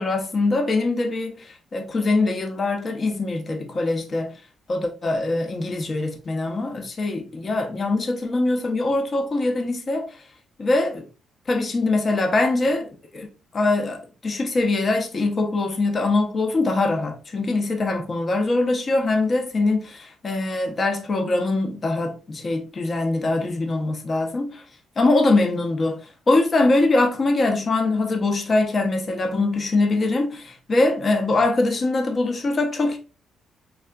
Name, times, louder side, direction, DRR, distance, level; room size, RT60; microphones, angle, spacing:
voice 1, 0.0-4.3 4.7-10.2 10.6-11.0 11.5-13.3 13.5-24.6 25.0-33.0, left 2 dB, 40° left, 0.6 m, -23 dB
3.5 x 2.3 x 2.2 m
cardioid pair, 90°, 0 cm